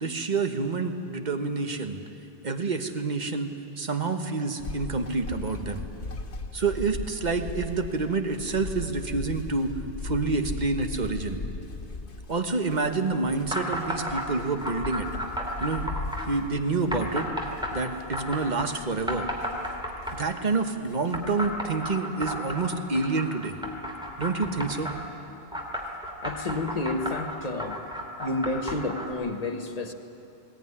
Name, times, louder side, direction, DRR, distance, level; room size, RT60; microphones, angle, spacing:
voice 1, 0.0-2.0 2.4-5.8 6.5-9.7 10.0-11.4 12.3-15.1 15.6-15.9 16.3-17.3 17.7-19.3 20.1-23.5 24.2-24.9, right 3 dB, 45° right, 6 dB, 1.4 m, -28 dB
sound 1, 4.6-20.5 20.9-21.5, left 3 dB, 85° left, 1.6 m, -38 dB
sound 2, 13.5-14.3 14.6-16.3 16.9-18.7 19.1-20.4 21.1-25.0 25.5-29.1, equal, 5° right, 2.9 m, -33 dB
voice 2, 26.2-27.8 28.2-29.9, left 2 dB, 35° left, 5 dB, 1.5 m, -30 dB
20.5 x 17.5 x 9.8 m, 2.8 s
omnidirectional pair, 1.1 m